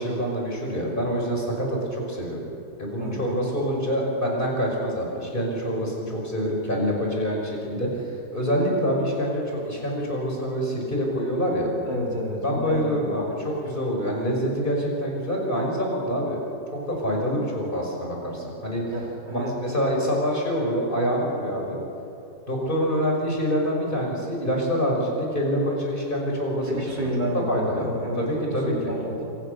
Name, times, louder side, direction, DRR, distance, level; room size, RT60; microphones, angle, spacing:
voice 1, 0.0-2.4 2.8-11.7 12.4-16.4 16.9-18.8 19.3-21.8 22.5-27.1 27.5-27.9 28.2-28.9, equal, 30° left, -1 dB, 5.9 m, -26 dB
voice 2, 11.8-13.3 18.9-19.5 26.6-29.3, equal, 80° right, -2 dB, 5.2 m, -30 dB
26.5 x 26.0 x 6.8 m, 2.9 s
omnidirectional pair, 1.9 m